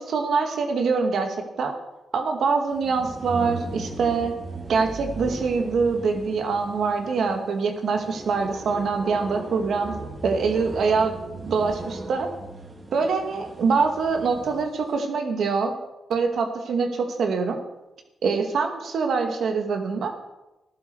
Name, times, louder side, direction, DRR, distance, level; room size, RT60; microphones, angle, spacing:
voice 1, 0.0-1.7 2.1-4.3 4.7-9.9 10.2-11.1 11.4-12.3 12.9-15.7 16.1-17.6 18.2-20.1, right 4 dB, 70° right, 4 dB, 2.2 m, -24 dB
sound 1, 2.7-14.7, right 2 dB, 40° right, 3.7 m, -38 dB
15.0 x 12.0 x 4.8 m, 0.99 s
cardioid pair, 60°, 0 cm